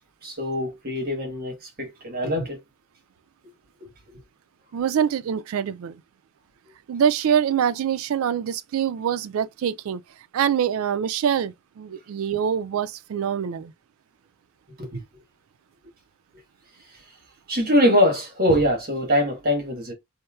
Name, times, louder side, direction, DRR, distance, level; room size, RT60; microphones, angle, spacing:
voice 1, 0.2-2.6 3.8-3.9 4.1-4.2 14.8-15.0 17.5-19.9, equal, 45° right, 1.3 m, -23 dB
voice 2, 4.7-6.0 6.9-10.0 10.3-13.7, right 8 dB, 70° right, 0.3 m, -24 dB
4.2 x 2.1 x 2.3 m
head